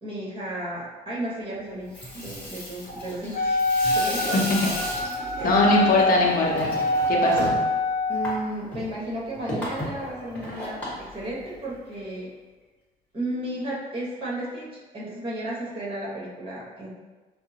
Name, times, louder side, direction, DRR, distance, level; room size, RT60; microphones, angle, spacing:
voice 1, 0.0-3.6 3.9-4.5 5.4-6.0 8.1-12.3 13.1-14.7 14.9-16.9, right 1 dB, 30° right, -5 dB, 1.3 m, -33 dB
Water tap faucet / Sink (filling or washing), 1.7-11.9, equal, 10° left, 1.4 m, -35 dB
Wind instrument woodwind instrument, 3.3-8.4, left 1 dB, 85° left, 0.9 m, -25 dB
voice 2, 4.3-4.7 5.4-6.7 7.1-7.6, left 2 dB, 60° left, -1 dB, 0.7 m, -21 dB
5.6 x 2.1 x 2.8 m, 1.3 s
cardioid pair, 110°, 17 cm